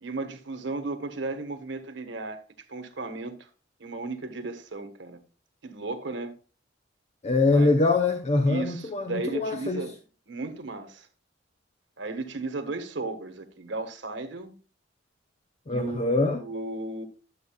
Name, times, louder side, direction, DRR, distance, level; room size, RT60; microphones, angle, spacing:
voice 1, 0.0-2.4 2.7-3.4 3.8-5.2 5.6-6.3 7.5-7.7 8.5-10.0 10.3-11.1 12.0-14.5 15.7-16.1 16.4-17.0, right 3 dB, 75° right, 1.5 m, -35 dB
voice 2, 7.2-9.8 15.7-16.4, left 3 dB, 35° left, 0.8 m, -23 dB
12.5 x 8.0 x 2.4 m
head